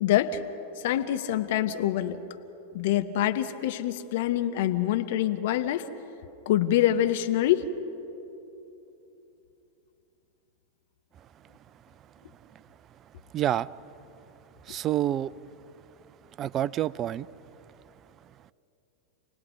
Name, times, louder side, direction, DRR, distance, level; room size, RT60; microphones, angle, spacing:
voice 1, 0.0-0.4 0.8-2.2 2.7-5.9 6.5-7.7, left 12 dB, 50° left, 9 dB, 1.0 m, -25 dB
voice 2, 13.3-13.7 14.7-15.3 16.4-17.3, right 12 dB, 30° right, 19 dB, 0.4 m, -27 dB
28.5 x 18.5 x 6.0 m, 3.0 s
figure-of-eight pair, 90°, 0 cm